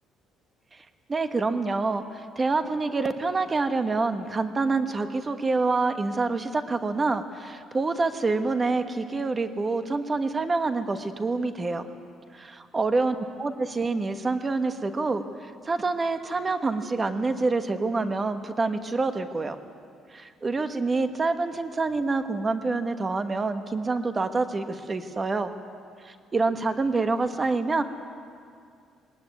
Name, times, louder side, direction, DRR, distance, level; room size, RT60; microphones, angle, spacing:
voice 1, 1.1-11.8 12.3-19.6 20.1-25.5 26.0-27.8, right 3 dB, 20° right, 8 dB, 1.2 m, -27 dB
21.0 x 19.0 x 9.3 m, 2.3 s
cardioid pair, 150°, 0 cm